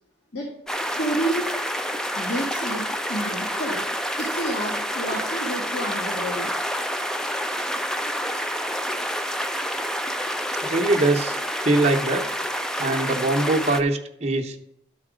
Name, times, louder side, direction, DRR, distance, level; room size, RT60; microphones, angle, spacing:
sound 1, 0.7-13.8, equal, 5° left, 0.3 m, -28 dB
voice 1, 1.0-1.5 2.2-3.8 4.2-6.5, right 1 dB, 60° left, -3 dB, 1.8 m, -29 dB
voice 2, 10.6-12.3 12.8-14.6, right 2 dB, 35° right, 2 dB, 0.8 m, -22 dB
11.5 x 4.1 x 5.0 m, 0.77 s
head